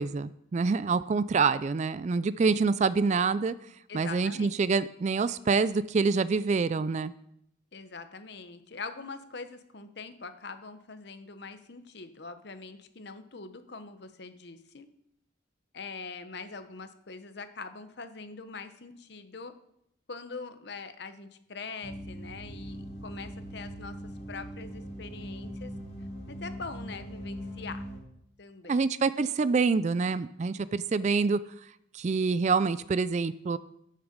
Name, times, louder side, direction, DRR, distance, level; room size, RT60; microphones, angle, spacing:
voice 1, 0.0-3.5 3.9-7.1 28.7-31.4 31.9-33.6, right 4 dB, 35° right, 16 dB, 0.3 m, -26 dB
voice 2, 3.9-4.5 7.7-14.9 15.7-19.5 20.1-24.0 24.3-25.7 26.3-27.8 28.4-28.8, left 4 dB, 55° left, 10 dB, 0.9 m, -43 dB
sound 1, 21.8-28.0, equal, 30° left, 2.0 m, -41 dB
13.0 x 6.7 x 5.2 m, 0.76 s
head